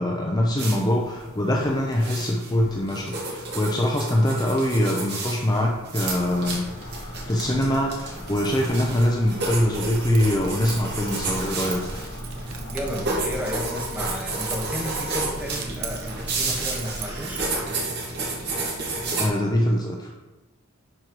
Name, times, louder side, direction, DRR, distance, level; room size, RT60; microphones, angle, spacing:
voice 1, 0.0-6.7 7.3-12.0 19.2-20.1, left 1 dB, 20° left, -1 dB, 0.8 m, -23 dB
sound 1, 0.6-19.3, right 2 dB, 55° right, 2.2 m, -32 dB
sound 2, 6.0-13.4, left 1 dB, 65° left, 3.1 m, -40 dB
Keys jangling, 9.5-17.5, right 3 dB, 80° right, 1.1 m, -38 dB
voice 2, 12.7-17.5, equal, 5° right, -2 dB, 1.6 m, -33 dB
11.0 x 4.6 x 4.7 m, 1.1 s
head